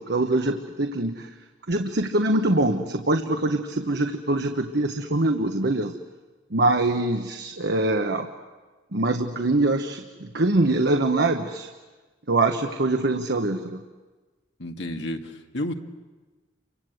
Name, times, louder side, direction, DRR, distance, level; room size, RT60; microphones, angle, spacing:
voice 1, 0.0-1.4 1.7-5.9 6.5-8.3 8.9-11.7 12.3-13.8, right 2 dB, 65° right, 5 dB, 1.3 m, -24 dB
voice 2, 14.6-15.7, left 1 dB, 70° left, 4 dB, 2.0 m, -31 dB
29.5 x 24.5 x 8.0 m, 1.3 s
head